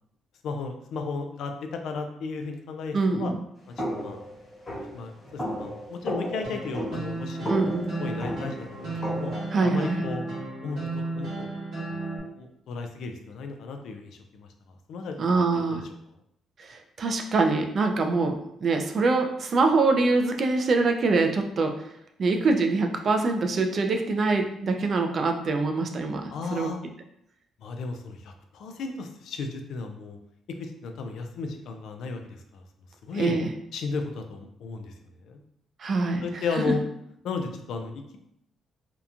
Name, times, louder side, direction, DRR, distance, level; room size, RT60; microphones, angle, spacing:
voice 1, 0.4-3.3 3.7-4.2 4.7-7.7 8.0-9.3 9.6-10.2 10.6-11.5 11.9-14.5 14.9-15.2 15.7-15.8 26.3-26.8 27.6-30.2 30.6-32.6 33.0-33.4 33.7-34.9 35.2-35.4 36.2-36.8 37.2-38.2, left 4 dB, 75° left, 5 dB, 0.3 m, -34 dB
voice 2, 2.9-3.4 7.5-7.9 9.5-10.0 15.2-15.8 16.6-21.7 22.2-26.7 33.2-33.5 35.8-36.2, right 3 dB, 50° right, 4 dB, 0.3 m, -24 dB
sound 1, 3.8-9.5, equal, 35° left, 1.2 m, -34 dB
sound 2, 6.4-12.2, right 2 dB, 75° right, 1.2 m, -34 dB
2.8 x 2.1 x 2.4 m, 0.76 s
cardioid pair, 90°, 0 cm